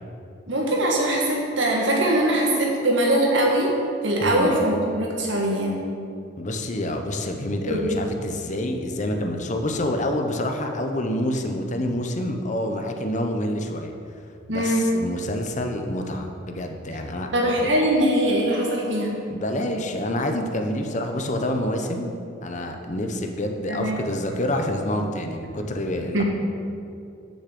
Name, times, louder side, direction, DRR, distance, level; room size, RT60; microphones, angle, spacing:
voice 1, 0.5-3.7 4.0-5.8 7.7-8.0 14.5-14.9 17.3-19.2 23.7-24.0 26.1-26.2, right 1 dB, 75° right, -2 dB, 1.9 m, -22 dB
voice 2, 4.2-4.5 6.4-13.9 14.5-17.3 17.6-17.7 19.3-26.2, left 1 dB, 40° left, 4 dB, 0.9 m, -27 dB
6.8 x 6.5 x 7.6 m, 2.6 s
head